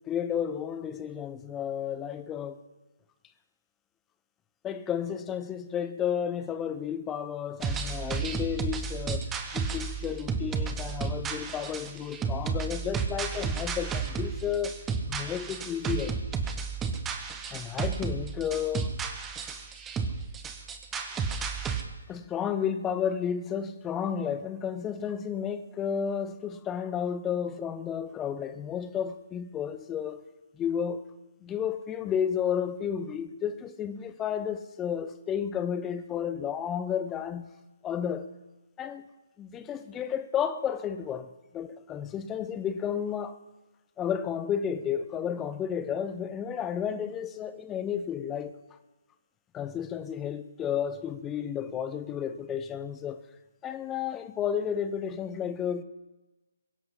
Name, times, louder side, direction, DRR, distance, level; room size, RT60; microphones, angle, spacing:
voice 1, 0.1-2.6 4.6-14.7 15.1-16.1 17.5-18.9 22.1-30.3 30.6-31.0 31.4-37.5 37.8-38.3 38.8-39.0 39.4-43.4 44.0-48.6 49.5-53.2 53.6-55.8, left 8 dB, 15° left, 0.7 m, -32 dB
sound 1, 7.6-21.8, right 5 dB, 10° right, 1.1 m, -33 dB
22.5 x 7.6 x 5.8 m
figure-of-eight pair, 140°, 0 cm